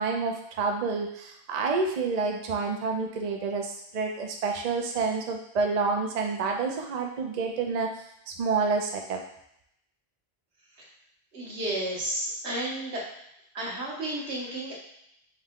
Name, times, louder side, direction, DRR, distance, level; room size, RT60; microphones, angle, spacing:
voice 1, 0.0-7.9 8.4-9.2, right 4 dB, 45° right, 2 dB, 0.6 m, -28 dB
voice 2, 11.3-13.0 13.5-14.7, right 1 dB, 85° right, -4 dB, 1.4 m, -32 dB
5.6 x 2.2 x 3.6 m, 0.76 s
omnidirectional pair, 1.1 m